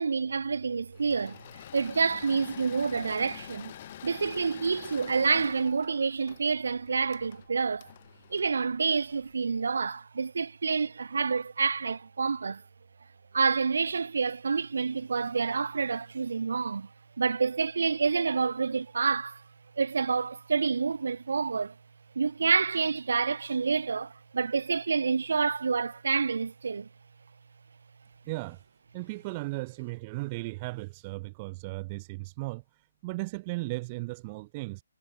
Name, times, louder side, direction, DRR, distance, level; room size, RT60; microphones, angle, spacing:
voice 1, 0.0-3.7 4.0-7.9 8.3-12.6 13.3-16.9 17.2-19.4 19.8-21.7 22.1-26.9, right 5 dB, 70° right, 3.0 m, -28 dB
Engine / Mechanisms, 0.9-9.3, left 12 dB, 40° left, 5.1 m, -46 dB
voice 2, 28.3-28.7 28.9-34.8, right 23 dB, 30° right, 7.1 m, -36 dB
figure-of-eight pair, 140°, 0 cm